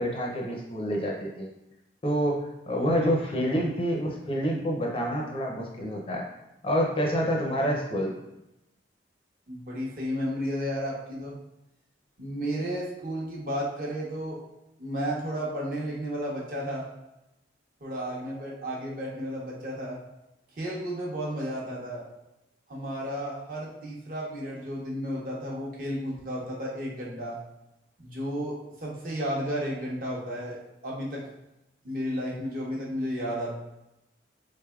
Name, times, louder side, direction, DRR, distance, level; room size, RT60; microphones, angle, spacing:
voice 1, 0.0-1.5 2.0-6.2 6.6-8.1, equal, 30° left, -1 dB, 0.5 m, -27 dB
voice 2, 9.5-11.4 12.2-14.4 14.8-16.9 17.8-20.0 20.5-22.0 22.7-27.3 28.0-30.6 30.8-31.3 31.8-33.6, equal, 50° right, -4 dB, 0.8 m, -33 dB
3.6 x 3.3 x 2.3 m, 0.92 s
head